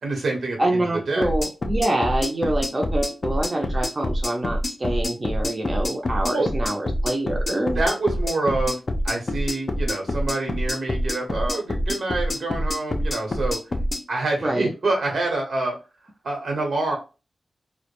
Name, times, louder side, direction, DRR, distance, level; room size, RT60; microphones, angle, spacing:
voice 1, 0.0-1.3 6.3-6.5 7.6-8.8 9.0-13.6 14.1-15.8 16.2-17.0, right 2 dB, 85° right, 1 dB, 0.9 m, -26 dB
voice 2, 0.6-7.8 14.4-14.7, right 1 dB, 30° right, 1 dB, 0.5 m, -25 dB
sound 1, 1.2-14.0, left 1 dB, 40° left, 0.4 m, -26 dB
2.2 x 2.1 x 2.9 m, 0.31 s
wide cardioid pair, 135°, 0 cm